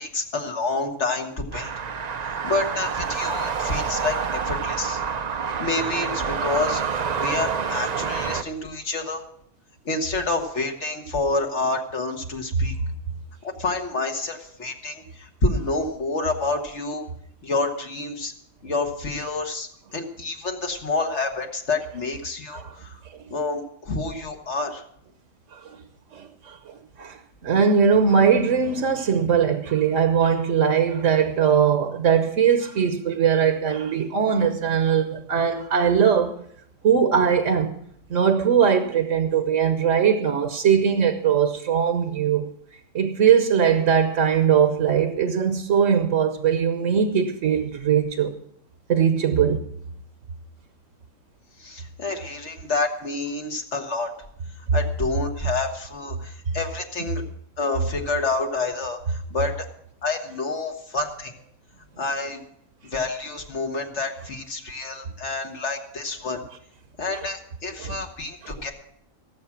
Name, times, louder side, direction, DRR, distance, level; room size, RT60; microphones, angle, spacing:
voice 1, 0.0-1.7 2.3-5.0 5.6-9.2 9.9-12.8 13.4-17.1 17.4-18.3 18.6-22.9 23.3-24.8 51.6-54.1 54.7-57.2 57.6-59.7 60.0-61.3 62.0-62.4 62.9-66.4 67.0-68.7, left 3 dB, 60° left, 1.7 m, -28 dB
sound 1, 1.5-8.4, right 6 dB, 45° right, 0.5 m, -27 dB
voice 2, 25.5-25.8 26.1-36.3 36.8-37.7 38.1-42.5 42.9-48.3 48.9-49.6 57.0-57.1 67.8-68.0 68.4-68.5, right 7 dB, 65° right, 1.3 m, -21 dB
17.5 x 7.6 x 5.9 m
omnidirectional pair, 1.4 m